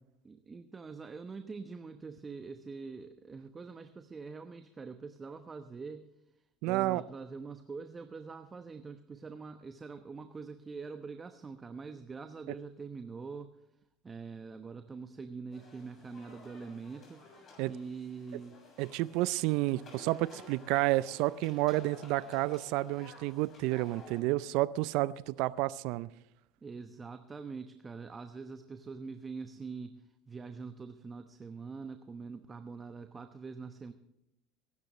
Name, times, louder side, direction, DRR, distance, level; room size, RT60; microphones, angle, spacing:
voice 1, 0.2-6.1 6.6-13.5 14.0-17.2 17.7-18.6 26.6-33.9, right 4 dB, 25° right, 1.0 m, -44 dB
voice 2, 6.6-7.0 17.6-17.7 18.8-26.1, right 18 dB, 65° right, 0.5 m, -30 dB
sound 1, 15.5-24.2, left 3 dB, 40° left, 6.9 m, -54 dB
23.0 x 12.0 x 3.1 m
hypercardioid pair, 80°, 0 cm